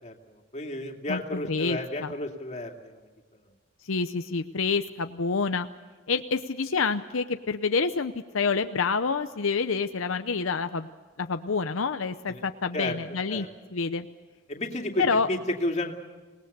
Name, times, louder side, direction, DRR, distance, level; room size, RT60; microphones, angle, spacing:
voice 1, 0.0-3.0 12.3-12.4 12.7-13.0 13.3-13.5 14.5-15.9, left 1 dB, 35° left, 2 dB, 2.5 m, -32 dB
voice 2, 1.1-2.1 3.8-5.7 6.1-10.9 11.2-14.1 15.0-15.3, left 4 dB, 80° left, 8 dB, 0.7 m, -28 dB
26.0 x 19.0 x 6.8 m, 1.4 s
head